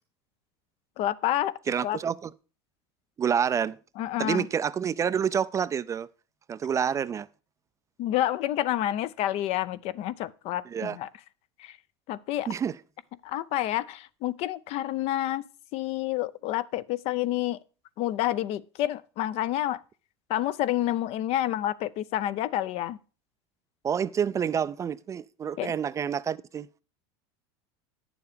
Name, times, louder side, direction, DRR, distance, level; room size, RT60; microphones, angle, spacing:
voice 1, 1.0-1.5 1.8-2.0 4.0-4.5 8.0-11.1 11.6-11.8 12.1-12.5 13.2-15.4 15.7-17.6 18.0-19.8 20.3-23.0 25.6-25.7, left 13 dB, 50° left, 0.6 m, -29 dB
voice 2, 1.7-2.3 3.2-3.8 4.2-6.1 6.5-7.3 10.7-11.0 12.5-12.7 23.8-26.7, right 8 dB, 25° right, 0.4 m, -28 dB
9.6 x 7.1 x 5.0 m
supercardioid pair, 120°, 13 cm